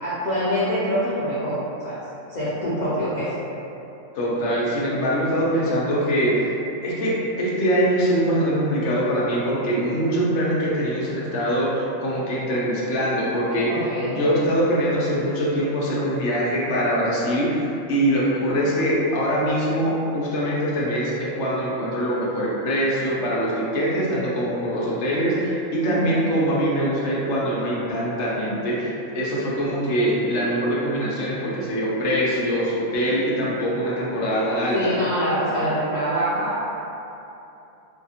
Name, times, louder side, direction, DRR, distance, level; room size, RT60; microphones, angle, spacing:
voice 1, 0.0-2.0 2.3-3.4 13.7-14.2 25.9-26.2 34.7-36.7, equal, 85° left, -12 dB, 0.3 m, -25 dB
voice 2, 4.1-6.5 6.8-13.7 14.0-34.9, equal, 65° left, -6 dB, 0.9 m, -23 dB
2.7 x 2.4 x 2.7 m, 2.8 s
omnidirectional pair, 1.4 m